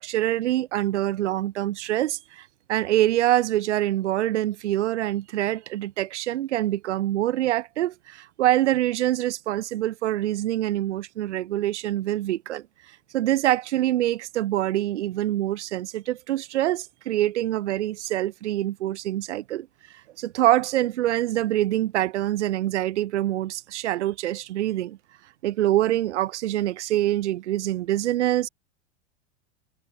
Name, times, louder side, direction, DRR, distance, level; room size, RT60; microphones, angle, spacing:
voice 1, 0.0-12.6 13.1-19.7 20.2-25.0 25.4-28.5, right 14 dB, 80° right, 0.7 m, -25 dB
hypercardioid pair, 85°, 35 cm